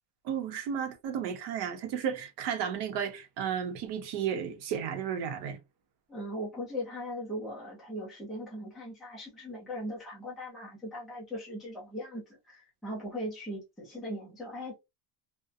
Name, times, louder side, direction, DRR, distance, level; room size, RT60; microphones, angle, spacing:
voice 1, 0.2-5.6, right 8 dB, 55° right, 0.8 m, -33 dB
voice 2, 6.1-14.7, equal, ahead, 0.4 m, -39 dB
2.7 x 2.1 x 2.3 m
cardioid pair, 175°, 49 cm